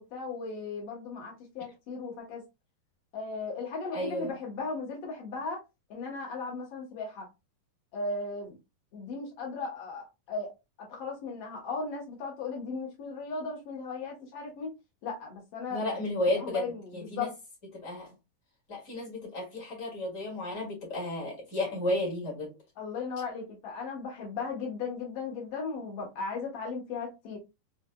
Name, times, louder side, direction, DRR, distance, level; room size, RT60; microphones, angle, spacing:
voice 1, 0.0-2.4 3.1-5.6 5.9-7.3 7.9-8.6 8.9-10.5 10.8-14.7 15.0-16.0 16.4-17.3 22.8-27.4, left 4 dB, 60° left, 1.7 m, -36 dB
voice 2, 3.9-4.3 15.7-16.6 16.9-17.3 17.7-18.1 18.7-22.5, left 1 dB, 35° left, 1.2 m, -32 dB
5.7 x 2.5 x 2.2 m
omnidirectional pair, 4.1 m